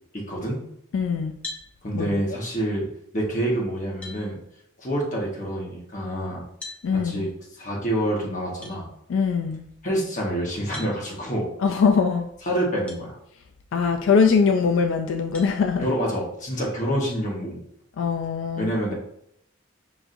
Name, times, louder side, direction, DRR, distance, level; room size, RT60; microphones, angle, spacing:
voice 1, 0.1-0.6 1.8-2.9 3.1-4.4 4.8-6.4 6.9-7.3 7.6-8.9 9.8-11.5 12.5-13.2 15.8-17.6 18.6-18.9, right 1 dB, 40° left, -2 dB, 1.1 m, -27 dB
voice 2, 0.9-1.3 1.9-2.4 6.8-7.3 9.1-9.6 11.6-12.3 13.7-15.9 18.0-18.7, left 5 dB, 85° left, 5 dB, 0.3 m, -22 dB
sound 1, 1.4-1.7 3.4-3.5 4.0-4.2 6.6-6.8 8.6-8.8 10.7-11.0 12.9-13.0 13.7-13.8 15.3-15.5, left 2 dB, 5° left, 0.6 m, -38 dB
6.0 x 2.6 x 2.5 m, 0.73 s
head